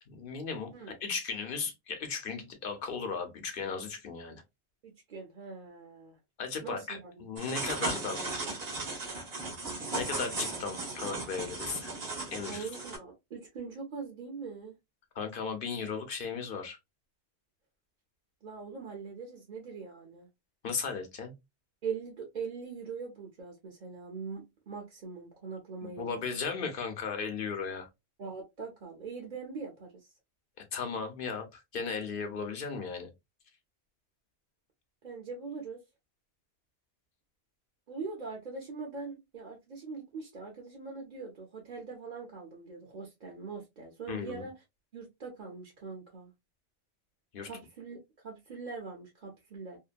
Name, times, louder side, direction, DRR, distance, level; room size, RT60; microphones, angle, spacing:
voice 1, 0.1-0.7 1.0-4.4 6.4-8.2 9.9-11.9 12.3-12.7 15.1-16.8 20.6-21.3 25.8-27.9 30.7-33.1 44.1-44.5 47.3-47.5, left 5 dB, 55° left, 0.9 m, -36 dB
voice 2, 4.8-6.2 6.6-7.2 12.5-14.7 18.4-20.3 21.8-26.3 28.2-30.1 35.0-35.8 37.9-44.5 44.9-46.3 47.4-49.8, right 5 dB, 45° right, 0.8 m, -42 dB
sound 1, 7.4-13.0, right 3 dB, 65° right, 1.2 m, -36 dB
2.8 x 2.1 x 2.4 m
omnidirectional pair, 1.1 m